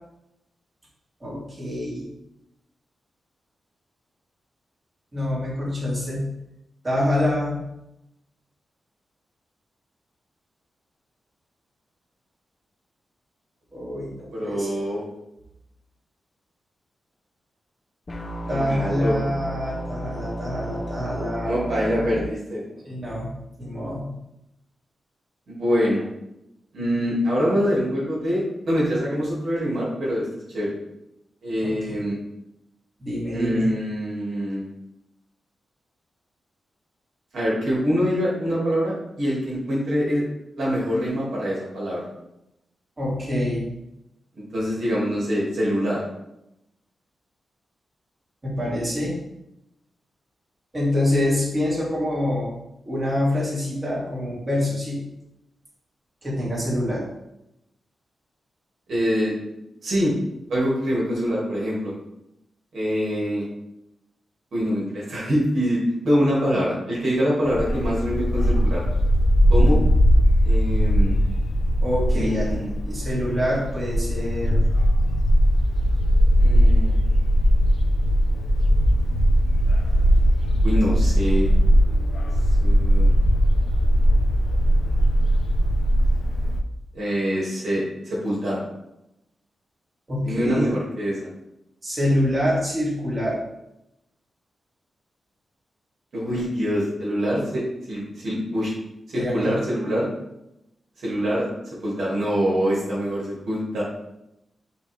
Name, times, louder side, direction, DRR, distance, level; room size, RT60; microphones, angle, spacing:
voice 1, 1.2-2.1 5.1-6.3 6.8-7.7 13.7-14.8 18.5-22.1 22.8-24.1 31.6-31.7 33.0-33.7 43.0-43.7 48.4-49.1 50.7-52.5 52.8-55.0 56.2-57.0 71.8-72.5 72.9-74.7 90.1-90.7 91.8-93.4 99.1-99.5, left 1 dB, 25° right, -6 dB, 2.3 m, -26 dB
voice 2, 14.3-15.0 18.4-19.2 21.4-22.7 25.5-26.1 26.7-30.8 31.4-32.2 33.3-34.6 37.3-40.2 40.6-42.1 44.4-46.0 58.9-59.3 59.8-60.1 60.5-61.9 62.7-63.4 64.5-68.8 69.5-69.8 70.4-71.2 72.1-72.7 76.4-77.0 80.6-81.5 82.6-83.1 86.9-88.6 90.2-91.3 96.1-98.7 99.1-100.1 101.0-101.4 101.8-103.8, equal, 70° right, -5 dB, 2.3 m, -24 dB
sound 1, 18.1-22.2, equal, 30° left, 0.9 m, -33 dB
Bark, 67.4-86.6, equal, 75° left, 0.6 m, -19 dB
9.3 x 3.2 x 3.4 m, 0.87 s
wide cardioid pair, 130°, 0 cm